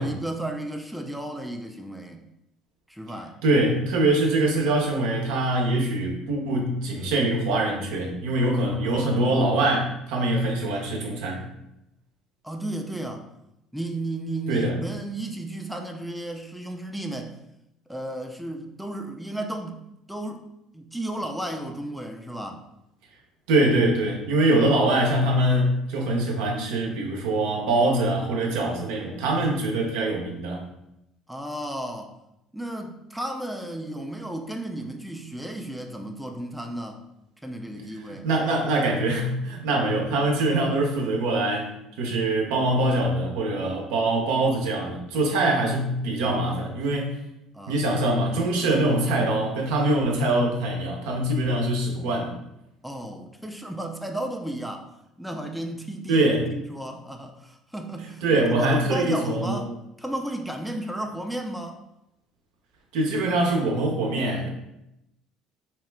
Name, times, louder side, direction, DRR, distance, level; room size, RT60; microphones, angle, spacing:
voice 1, 0.0-2.2 2.9-3.4 12.4-13.3 13.7-17.4 17.9-19.8 20.1-20.4 20.7-22.6 31.3-32.1 32.5-37.0 37.4-38.3 47.5-47.8 52.8-54.9 55.2-56.2 56.5-58.2 58.5-59.7 60.0-61.8, right 1 dB, ahead, 3 dB, 0.4 m, -33 dB
voice 2, 3.4-11.5 14.5-14.8 23.5-30.6 38.1-47.1 47.7-52.3 56.1-56.5 58.2-59.6 62.9-64.5, right 2 dB, 80° right, 1 dB, 0.6 m, -23 dB
2.8 x 2.2 x 3.1 m, 0.85 s
supercardioid pair, 75°, 0 cm